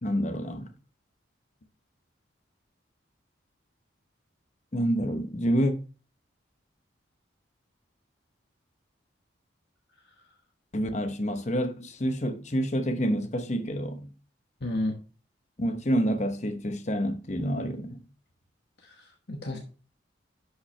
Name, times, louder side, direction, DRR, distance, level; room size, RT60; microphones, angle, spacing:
voice 1, 0.0-0.7 4.7-5.7 10.7-14.1 15.6-18.0, equal, 35° left, 0.9 m, -28 dB
voice 2, 14.6-15.0 19.0-19.6, left 1 dB, 55° left, 1.2 m, -31 dB
11.0 x 5.7 x 3.3 m
head